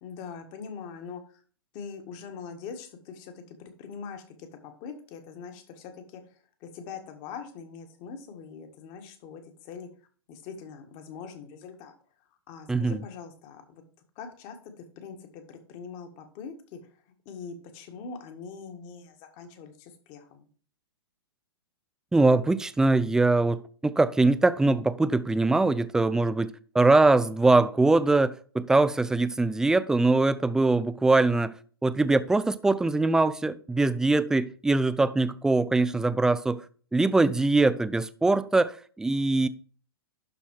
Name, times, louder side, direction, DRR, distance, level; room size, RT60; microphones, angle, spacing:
voice 1, 0.0-1.4 1.7-9.9 10.3-11.9 12.5-13.8 14.1-16.8 17.2-20.5, left 6 dB, 40° left, 1.6 m, -43 dB
voice 2, 12.7-13.0 22.1-31.5 31.8-36.6 36.9-39.5, right 2 dB, 5° right, 0.4 m, -22 dB
11.5 x 4.2 x 4.5 m
figure-of-eight pair, 110°, 13 cm